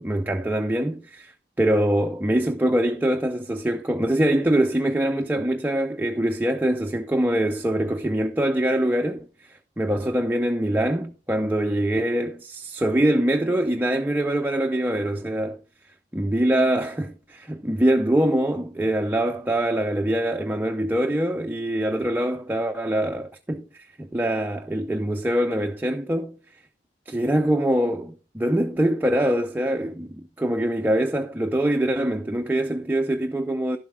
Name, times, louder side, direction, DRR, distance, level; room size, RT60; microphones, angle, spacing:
voice 1, 0.0-1.3 1.6-9.2 9.8-15.6 16.1-26.3 27.1-33.8, right 1 dB, 10° right, 0.5 m, -24 dB
11.0 x 7.4 x 3.6 m
head